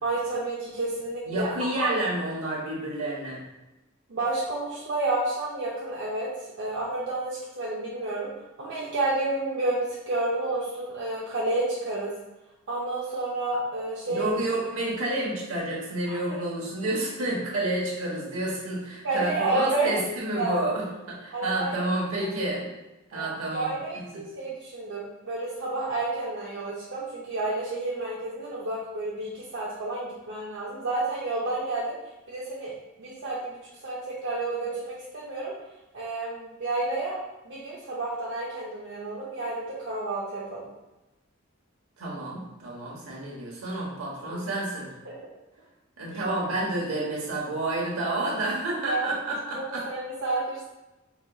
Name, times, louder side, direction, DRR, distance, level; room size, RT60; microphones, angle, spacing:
voice 1, 0.0-1.5 1.7-1.9 4.1-6.3 6.6-8.3 8.6-12.1 12.7-14.3 16.1-16.2 19.0-20.0 20.4-20.6 21.3-21.7 22.2-22.3 23.1-32.0 32.3-32.7 33.0-35.5 35.9-37.1 37.4-40.7 44.3-44.5 45.1-45.2 46.1-46.2 48.8-49.1 49.5-50.7, right 2 dB, 60° right, -6 dB, 0.6 m, -30 dB
voice 2, 1.3-3.4 14.1-22.7 23.1-23.7 24.1-24.2 42.0-44.9 46.0-49.9, right 1 dB, 75° right, -4 dB, 1.1 m, -30 dB
4.0 x 2.8 x 2.3 m, 1.0 s
head